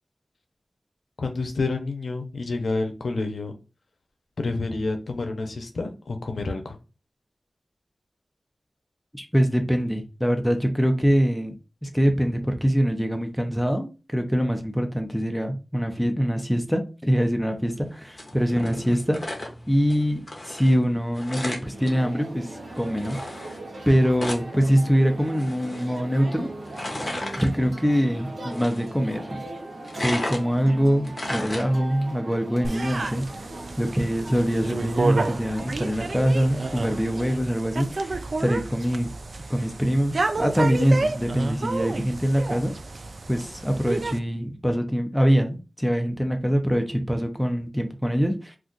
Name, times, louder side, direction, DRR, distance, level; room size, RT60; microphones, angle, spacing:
voice 1, 1.2-3.5 4.4-6.8, left 3 dB, 80° left, 5 dB, 0.6 m, -29 dB
voice 2, 9.1-11.5 11.8-19.3 19.7-23.2 23.9-26.5 27.4-29.4 30.0-33.3 33.8-39.1 39.5-42.7 43.3-48.6, equal, ahead, 4 dB, 0.6 m, -24 dB
sound 1, 17.7-32.2, left 1 dB, 35° left, 0.8 m, -37 dB
sound 2, 21.7-37.4, right 1 dB, 80° right, 0.8 m, -39 dB
sound 3, 32.6-44.2, right 3 dB, 65° right, 0.3 m, -30 dB
2.4 x 2.4 x 3.8 m, 0.32 s
wide cardioid pair, 75°, 0 cm